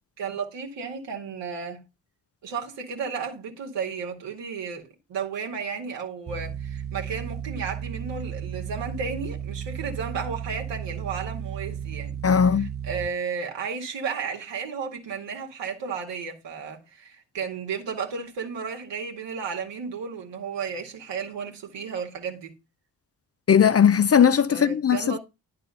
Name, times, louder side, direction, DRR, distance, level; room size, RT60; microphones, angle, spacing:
voice 1, 0.2-1.8 2.4-12.2 12.6-22.6 24.5-25.2, right 6 dB, 70° right, 2.1 m, -33 dB
sound 1, 6.3-13.1, right 8 dB, 25° right, 0.8 m, -34 dB
voice 2, 12.2-12.7 23.5-25.2, left 7 dB, 35° left, 0.6 m, -18 dB
10.5 x 4.1 x 5.5 m
hypercardioid pair, 45°, 44 cm